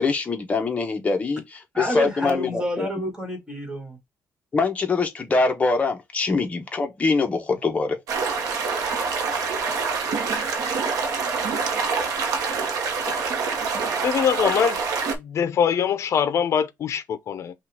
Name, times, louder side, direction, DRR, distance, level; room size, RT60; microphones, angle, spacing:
voice 1, 0.0-1.4 1.9-2.6 4.5-8.0, left 3 dB, 25° left, 0.9 m, -23 dB
voice 2, 1.7-4.0, equal, 10° right, 1.7 m, -29 dB
sound 1, 8.1-15.2, right 5 dB, 85° right, 1.0 m, -26 dB
voice 3, 14.0-14.8 15.2-17.5, left 8 dB, 50° left, 0.6 m, -23 dB
5.5 x 2.4 x 3.4 m
cardioid pair, 160°, 6 cm